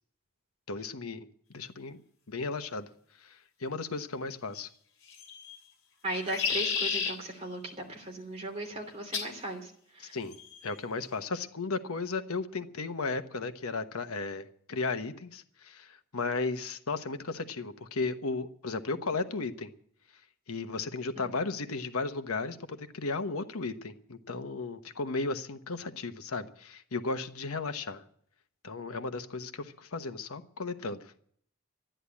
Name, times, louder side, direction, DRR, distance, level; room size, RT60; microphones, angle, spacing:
voice 1, 0.7-2.0 2.3-2.9 3.2-4.7 10.0-10.4 10.6-19.7 20.5-28.0 28.6-31.1, left 3 dB, 85° left, 8 dB, 1.1 m, -35 dB
sound 1, 5.1-5.6 6.1-7.1 9.1-9.4 10.3-10.7, left 6 dB, 60° left, 3.7 m, -31 dB
voice 2, 6.0-10.2 21.1-21.4, right 1 dB, 30° right, 2 dB, 3.0 m, -37 dB
13.5 x 10.0 x 8.4 m, 0.63 s
head